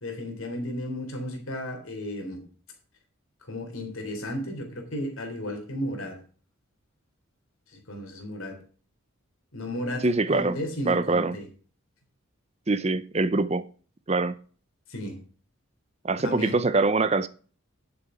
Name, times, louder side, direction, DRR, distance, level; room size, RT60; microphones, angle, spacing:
voice 1, 0.0-2.4 3.5-6.2 7.7-8.6 9.5-10.1 10.3-11.5 14.9-15.2 16.2-16.6, left 1 dB, 70° left, 3.5 m, -34 dB
voice 2, 10.0-10.6 10.9-11.4 12.7-13.6 14.1-14.3 16.0-17.3, right 3 dB, 30° right, 0.6 m, -24 dB
11.0 x 7.0 x 5.0 m
head